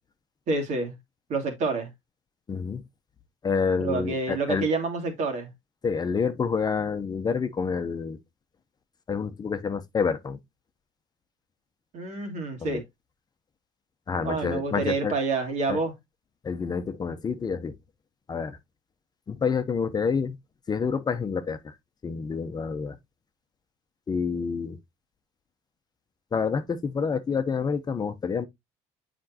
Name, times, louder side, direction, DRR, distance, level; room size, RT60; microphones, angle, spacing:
voice 1, 0.5-1.0 1.3-1.9 3.8-5.5 11.9-12.8 14.2-15.9, right 3 dB, 60° right, 2.5 m, -28 dB
voice 2, 2.5-2.8 3.4-4.7 5.8-8.2 9.1-10.4 12.6-12.8 14.1-15.1 15.7-15.8 16.4-17.7 18.3-18.6 19.3-20.4 20.7-21.7 22.0-23.0 24.1-24.8 26.3-28.5, left 5 dB, 30° left, 0.8 m, -28 dB
7.7 x 5.2 x 2.9 m
supercardioid pair, 90°, 14 cm